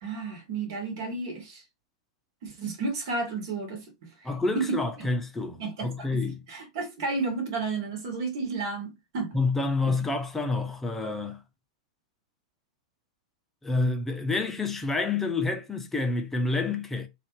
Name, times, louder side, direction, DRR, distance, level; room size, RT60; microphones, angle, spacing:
voice 1, 0.0-1.6 2.4-4.3 4.5-5.1 5.6-6.2 6.5-9.4 9.8-9.9, right 4 dB, 55° right, 1.5 m, -32 dB
voice 2, 4.2-6.4 9.3-11.4 13.6-17.1, left 3 dB, 10° left, 0.7 m, -28 dB
2.7 x 2.5 x 3.1 m
figure-of-eight pair, 100°, 3 cm